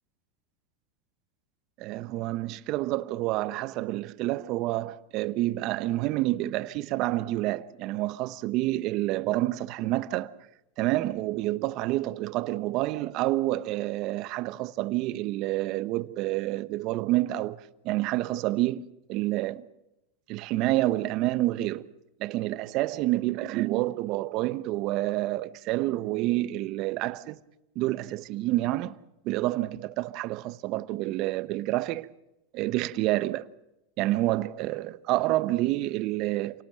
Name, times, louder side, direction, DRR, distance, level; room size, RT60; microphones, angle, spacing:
voice 1, 1.8-10.3 10.8-19.7 20.3-21.9 22.2-27.4 27.7-29.0 29.2-32.1 32.5-33.5 34.0-36.6, right 17 dB, 50° right, 1.0 m, -28 dB
28.0 x 18.5 x 7.5 m
hypercardioid pair, 110°, 0 cm